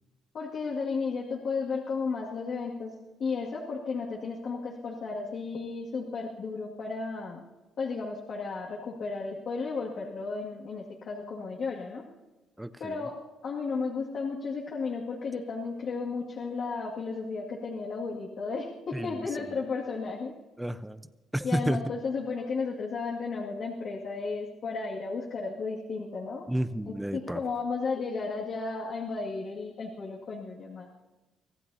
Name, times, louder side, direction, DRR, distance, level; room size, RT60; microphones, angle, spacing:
voice 1, 0.3-2.9 3.2-7.4 7.8-12.0 12.8-13.1 13.4-20.3 21.4-26.5 26.9-30.9, left 4 dB, 60° left, -4 dB, 2.2 m, -34 dB
voice 2, 12.6-13.1 18.9-19.3 20.6-21.0 21.3-21.8 26.5-27.4, right 1 dB, 5° right, 13 dB, 0.7 m, -31 dB
24.5 x 15.5 x 2.8 m, 1.1 s
cardioid pair, 90°, 0 cm